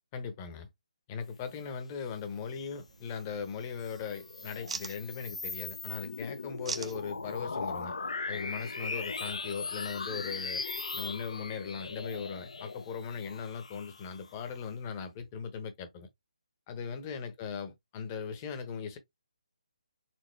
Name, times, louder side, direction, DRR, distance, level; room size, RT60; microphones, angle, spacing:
voice 1, 0.1-0.7 1.1-7.9 8.3-10.6 10.9-16.1 16.7-19.0, left 6 dB, 20° left, 0.9 m, -39 dB
sound 1, 2.4-9.7, right 5 dB, 55° right, 0.9 m, -47 dB
sound 2, 3.6-14.5, left 4 dB, 75° left, 0.8 m, -39 dB
4.4 x 3.7 x 3.2 m
hypercardioid pair, 165°, 4 cm